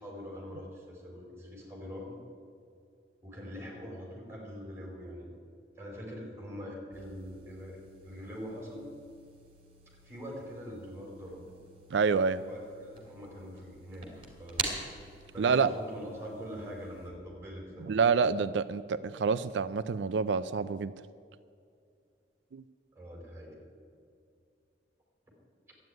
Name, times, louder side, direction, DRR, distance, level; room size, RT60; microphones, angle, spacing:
voice 1, 0.0-2.2 3.2-5.4 5.7-8.9 10.0-11.4 12.3-14.1 14.3-14.7 15.3-18.0 22.9-23.6, equal, 15° right, -2 dB, 4.1 m, -43 dB
sound 1, 6.9-17.1, right 3 dB, 30° right, 2.8 m, -45 dB
voice 2, 11.9-12.4 15.4-15.7 17.8-20.9 22.5-22.6, right 5 dB, 90° right, 14 dB, 0.4 m, -27 dB
12.5 x 9.3 x 9.3 m, 2.4 s
head